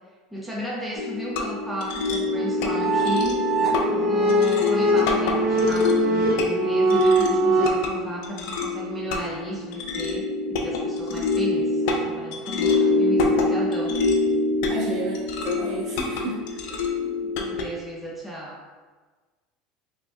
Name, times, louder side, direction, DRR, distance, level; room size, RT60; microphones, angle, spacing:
voice 1, 0.3-3.5 3.9-14.0 16.0-16.2 16.5-18.6, right 1 dB, ahead, -5 dB, 0.5 m, -34 dB
sound 1, 1.0-17.6, left 3 dB, 70° left, 0.4 m, -26 dB
sound 2, 2.3-7.7, right 1 dB, 20° right, 1.1 m, -22 dB
voice 2, 14.6-16.0 16.2-16.3, right 3 dB, 45° right, -3 dB, 1.1 m, -31 dB
5.0 x 2.2 x 2.3 m, 1.4 s
supercardioid pair, 115°, 0 cm